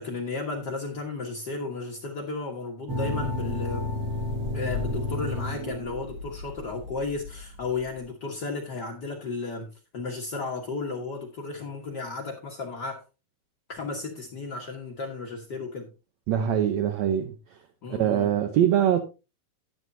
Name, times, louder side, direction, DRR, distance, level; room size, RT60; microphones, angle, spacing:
voice 1, 0.0-3.9 4.5-13.0 13.7-15.9 17.8-18.4, left 3 dB, 85° left, 0.9 m, -34 dB
sound 1, 2.9-8.0, left 2 dB, 55° right, 1.0 m, -31 dB
voice 2, 16.3-17.3 17.9-19.0, right 10 dB, 80° right, 1.6 m, -23 dB
12.5 x 9.8 x 2.7 m
omnidirectional pair, 4.2 m